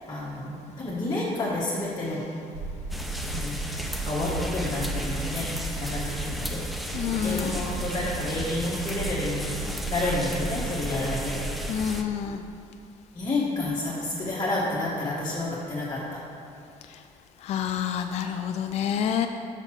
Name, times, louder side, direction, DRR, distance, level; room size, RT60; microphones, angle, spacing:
voice 1, 0.1-2.2 3.3-3.6 4.0-5.5 5.8-6.6 7.2-9.6 9.9-11.4 13.1-16.0, left 2 dB, 30° left, -8 dB, 1.4 m, -29 dB
sound 1, 2.5-11.8, right 2 dB, 80° right, 1.0 m, -34 dB
sound 2, 2.9-12.0, equal, ahead, 0.5 m, -36 dB
voice 2, 6.9-7.6 11.7-12.4 17.4-19.3, left 8 dB, 50° left, 6 dB, 0.4 m, -28 dB
6.3 x 4.1 x 6.1 m, 2.4 s
cardioid pair, 110°, 14 cm